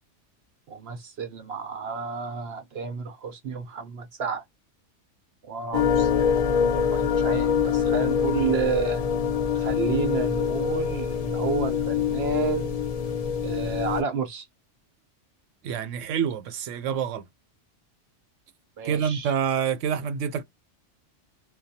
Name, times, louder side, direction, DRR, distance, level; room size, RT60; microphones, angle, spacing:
voice 1, 0.7-4.4 5.4-9.0 9.5-12.8 13.4-14.5 18.8-19.3, right 6 dB, 65° right, 0.8 m, -31 dB
sound 1, 5.7-14.0, left 7 dB, 55° left, 0.4 m, -25 dB
voice 2, 15.6-17.2 18.8-20.4, right 8 dB, 90° right, 1.0 m, -27 dB
2.3 x 2.2 x 2.6 m
omnidirectional pair, 1.2 m